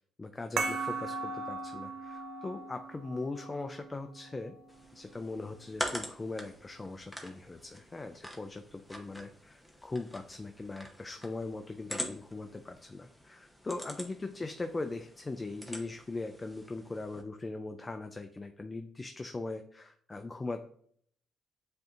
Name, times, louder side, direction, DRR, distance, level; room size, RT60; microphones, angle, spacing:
voice 1, 0.0-4.5 4.9-20.6, left 3 dB, 25° left, 7 dB, 0.3 m, -40 dB
sound 1, 0.6-5.6, right 4 dB, 70° right, 0.5 m, -39 dB
sound 2, 4.7-17.2, equal, 5° left, 0.8 m, -45 dB
7.8 x 2.6 x 2.5 m, 0.62 s
cardioid pair, 90°, 0 cm